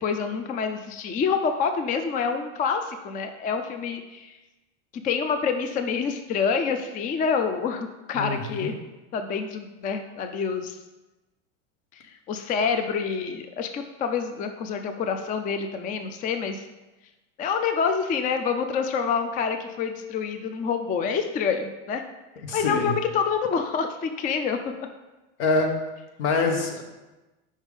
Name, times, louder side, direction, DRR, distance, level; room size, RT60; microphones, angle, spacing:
voice 1, 0.0-4.4 5.0-8.7 9.1-10.8 11.9-16.7 17.4-22.0 22.5-24.9, left 6 dB, 25° left, 7 dB, 0.4 m, -27 dB
voice 2, 8.2-8.7 22.4-22.9 25.4-25.7 26.2-26.8, left 3 dB, 75° left, 3 dB, 1.2 m, -25 dB
5.3 x 3.5 x 4.9 m, 1.1 s
supercardioid pair, 110°, 36 cm